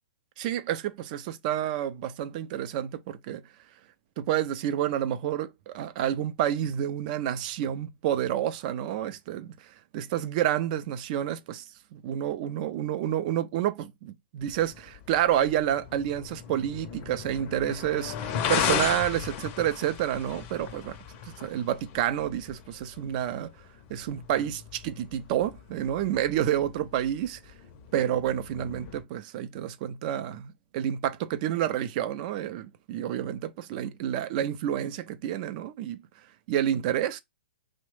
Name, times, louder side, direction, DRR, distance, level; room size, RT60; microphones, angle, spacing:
voice 1, 0.4-3.4 4.2-11.6 11.9-21.0 21.3-23.5 23.9-27.4 27.9-36.0 36.5-37.2, right 11 dB, 40° right, 0.4 m, -29 dB
sound 1, 14.4-29.0, left 8 dB, 35° left, 0.5 m, -37 dB
3.0 x 2.0 x 3.1 m
hypercardioid pair, 135°, 7 cm